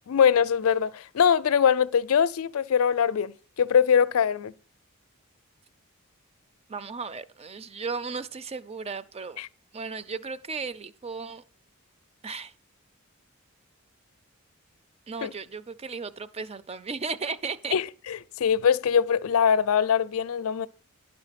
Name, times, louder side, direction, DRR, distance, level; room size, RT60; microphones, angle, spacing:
voice 1, 0.1-3.3 3.6-4.5 9.4-9.5 15.2-15.3 17.7-20.7, left 7 dB, 75° left, 0.4 m, -22 dB
voice 2, 6.7-9.4 9.7-11.4 12.2-12.5 15.1-17.8, right 4 dB, 30° right, 0.5 m, -35 dB
11.0 x 5.3 x 5.8 m
head